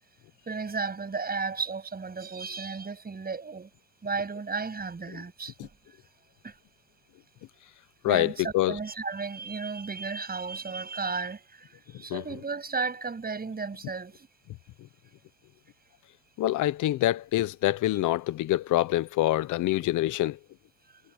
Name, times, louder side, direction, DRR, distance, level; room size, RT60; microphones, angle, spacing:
voice 1, 0.5-3.7 4.0-5.7 6.4-6.6 8.0-14.3 20.8-21.0, right 4 dB, 30° right, 7.5 m, -34 dB
voice 2, 8.0-8.8 12.1-12.2 16.4-20.4, left 15 dB, 85° left, 1.0 m, -26 dB
cardioid pair, 90°, 30 cm